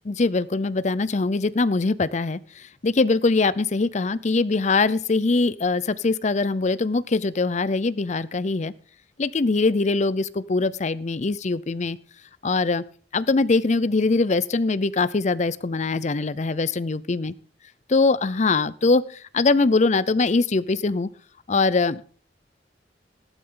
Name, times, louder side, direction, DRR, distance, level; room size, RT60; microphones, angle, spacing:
voice 1, 0.0-8.7 9.2-12.0 12.4-12.8 13.1-17.3 17.9-21.1 21.5-22.1, left 3 dB, 40° left, 17 dB, 0.6 m, -22 dB
14.5 x 12.0 x 3.8 m, 0.41 s
head